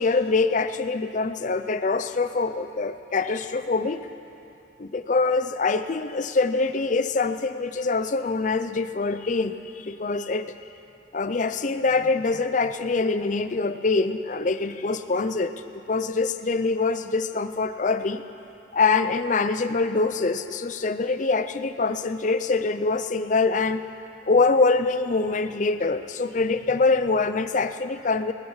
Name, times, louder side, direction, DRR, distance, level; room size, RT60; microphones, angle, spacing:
voice 1, 0.0-4.0 4.8-10.5 11.1-15.5 15.9-18.2 18.7-23.8 24.3-28.3, left 3 dB, 45° left, 11 dB, 0.5 m, -24 dB
19.0 x 14.5 x 4.8 m, 2.7 s
head